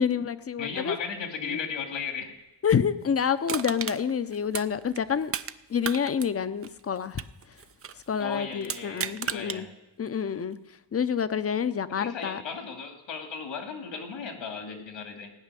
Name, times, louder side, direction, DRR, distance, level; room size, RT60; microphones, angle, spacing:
voice 1, 0.0-1.0 1.5-1.6 2.6-5.3 5.7-7.2 8.1-9.7 10.0-10.6 10.9-12.4, left 7 dB, 30° left, 13 dB, 0.6 m, -28 dB
voice 2, 0.6-2.3 8.2-9.7 11.9-15.3, left 6 dB, 85° left, 4 dB, 2.6 m, -36 dB
Crushing, 3.5-5.6 5.8-8.0 8.6-9.6 10.1-10.2, right 7 dB, 35° right, 0.4 m, -34 dB
17.0 x 5.7 x 9.8 m, 1.0 s
cardioid pair, 120°, 44 cm